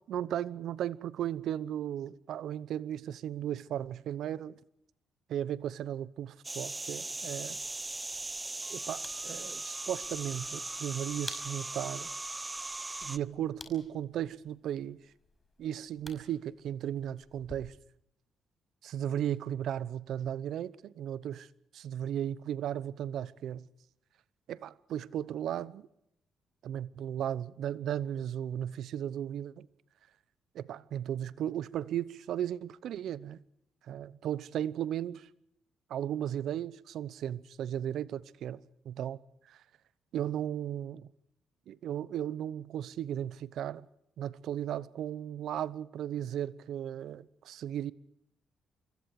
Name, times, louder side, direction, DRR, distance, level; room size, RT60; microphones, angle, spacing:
voice 1, 0.1-4.6 5.3-7.6 8.7-12.1 13.0-15.0 15.6-17.7 18.8-21.5 21.7-23.7 24.5-25.9 26.6-29.7 30.5-33.4 33.9-35.3 35.9-39.2 39.5-39.6 40.1-41.1 41.7-43.9 44.2-47.9, right 10 dB, 75° right, 0.9 m, -36 dB
sound 1, 6.4-13.2, right 2 dB, 15° right, 0.8 m, -39 dB
sound 2, 7.6-17.6, left 2 dB, 15° left, 5.5 m, -53 dB
26.0 x 23.5 x 4.8 m
cardioid pair, 90°, 0 cm